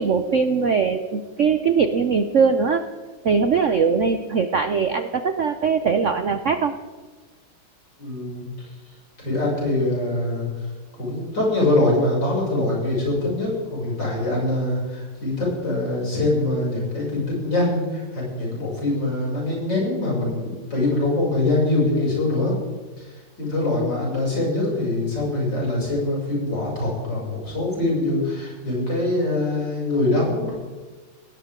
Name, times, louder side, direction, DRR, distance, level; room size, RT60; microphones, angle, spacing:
voice 1, 0.0-2.9 3.2-6.8, right 5 dB, 75° right, 9 dB, 0.7 m, -21 dB
voice 2, 8.0-8.5 9.2-22.5 23.0-30.5, left 2 dB, 60° left, -4 dB, 7.5 m, -23 dB
20.0 x 17.5 x 3.8 m, 1.4 s
omnidirectional pair, 2.3 m